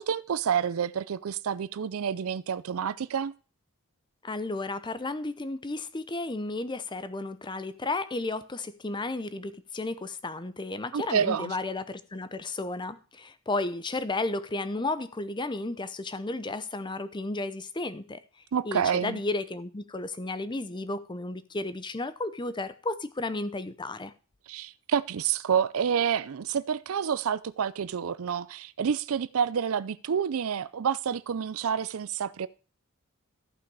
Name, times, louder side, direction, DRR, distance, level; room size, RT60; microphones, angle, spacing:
voice 1, 0.0-3.3 10.9-11.5 18.5-19.2 24.5-32.5, right 7 dB, 70° right, 0.4 m, -28 dB
voice 2, 4.2-18.2 18.6-24.1, left 2 dB, 20° left, 0.6 m, -33 dB
13.5 x 5.8 x 4.7 m
head